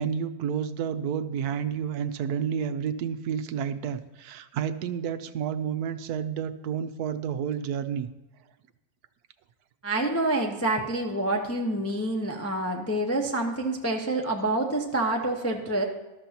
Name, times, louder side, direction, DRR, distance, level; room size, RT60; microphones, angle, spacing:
voice 1, 0.0-8.1, right 8 dB, 70° right, 10 dB, 1.0 m, -30 dB
voice 2, 9.8-15.8, right 2 dB, 15° left, 1 dB, 0.5 m, -27 dB
13.5 x 12.0 x 2.9 m, 1.1 s
omnidirectional pair, 2.0 m